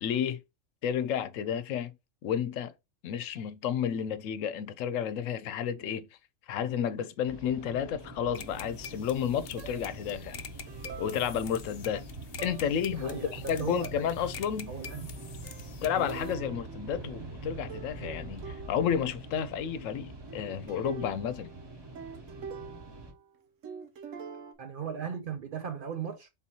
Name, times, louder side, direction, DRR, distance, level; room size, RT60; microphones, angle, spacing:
voice 1, 0.0-0.4 0.8-1.9 2.2-2.7 3.0-6.1 6.5-10.4 11.0-12.1 12.4-14.7 15.8-21.5, left 8 dB, 85° left, 0.9 m, -31 dB
sound 1, 7.2-23.1, right 2 dB, 20° right, 1.0 m, -44 dB
sound 2, 8.3-16.3, left 8 dB, 60° left, 0.7 m, -47 dB
sound 3, 9.6-10.1 10.7-11.7 12.4-12.8 13.1-13.7 14.9-17.4 17.7-19.1 20.3-23.4 23.6-24.5, right 6 dB, 85° right, 1.1 m, -46 dB
voice 2, 12.9-13.9 14.7-15.2 17.0-17.2 24.6-26.3, right 7 dB, 60° right, 0.5 m, -38 dB
3.7 x 2.8 x 4.2 m
omnidirectional pair, 1.3 m